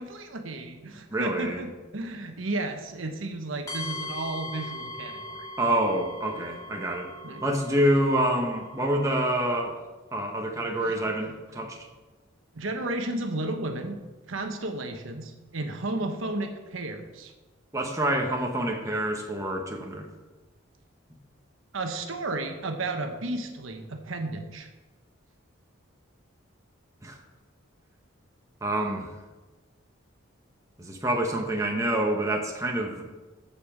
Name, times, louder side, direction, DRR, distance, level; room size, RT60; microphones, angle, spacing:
voice 1, 0.0-5.5 7.2-7.4 10.8-11.0 12.5-14.0 14.3-17.3 21.7-24.7, right 2 dB, 75° right, 5 dB, 1.1 m, -33 dB
voice 2, 1.1-1.6 5.6-7.1 7.4-9.8 10.1-11.8 17.7-20.1 27.0-27.2 28.6-29.1 30.8-33.1, right 1 dB, 15° right, 1 dB, 1.2 m, -27 dB
sound 1, 3.7-9.6, left 1 dB, 20° left, 2.4 m, -40 dB
8.4 x 7.0 x 7.2 m, 1.2 s
head